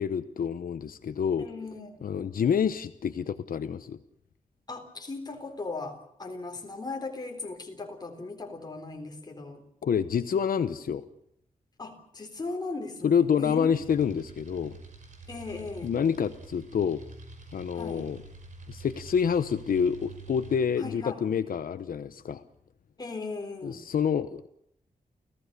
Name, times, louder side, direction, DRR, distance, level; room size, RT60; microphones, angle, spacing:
voice 1, 0.0-1.5 2.0-4.0 9.8-11.0 13.0-14.8 15.8-17.0 17.5-18.2 18.7-22.4 23.6-24.5, left 7 dB, 90° left, 11 dB, 1.0 m, -27 dB
voice 2, 1.4-2.1 4.7-9.6 11.8-13.7 15.3-16.0 17.7-18.1 20.8-21.2 23.0-23.8, left 3 dB, 30° left, 3 dB, 3.8 m, -38 dB
sound 1, 13.7-20.6, right 4 dB, 60° right, 5.6 m, -47 dB
29.5 x 16.0 x 6.8 m, 0.75 s
wide cardioid pair, 170°, 14 cm